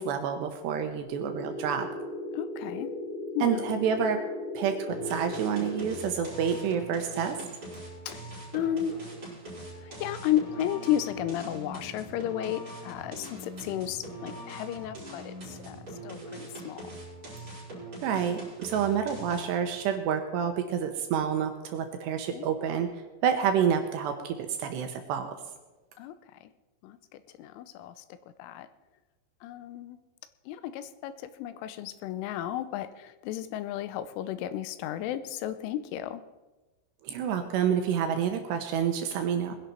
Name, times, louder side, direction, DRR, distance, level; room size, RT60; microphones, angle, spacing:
voice 1, 0.0-1.9 3.4-4.2 4.5-7.4 18.0-22.9 23.2-25.3 37.0-39.6, right 8 dB, 75° right, 6 dB, 2.7 m, -28 dB
sound 1, 1.0-6.0, left 1 dB, 30° left, 4.8 m, -37 dB
voice 2, 2.3-2.9 3.3-3.7 8.1-8.3 8.5-9.1 9.8-15.8 16.0-16.9 22.3-22.5 26.0-26.1 26.4-26.5 26.8-28.7 29.4-30.0 30.5-36.2, left 11 dB, 85° left, 13 dB, 3.1 m, -33 dB
sound 2, 4.9-19.7, right 1 dB, 20° right, 5.0 m, -42 dB
20.5 x 11.0 x 4.4 m, 1.1 s
omnidirectional pair, 5.7 m